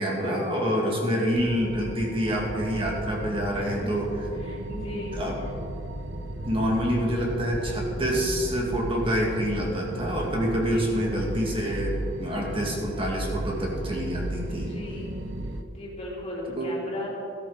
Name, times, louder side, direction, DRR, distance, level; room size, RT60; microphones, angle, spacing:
voice 1, 0.0-4.1 5.1-5.4 6.4-14.7 16.5-16.7, equal, 30° right, -2 dB, 2.3 m, -27 dB
voice 2, 0.9-1.4 3.5-3.9 4.4-5.2 10.5-10.9 14.5-15.1 15.7-17.1, left 1 dB, 35° left, -5 dB, 3.3 m, -38 dB
sound 1, 1.3-15.6, right 1 dB, 85° right, 0.8 m, -35 dB
13.5 x 13.0 x 4.1 m, 2.8 s
head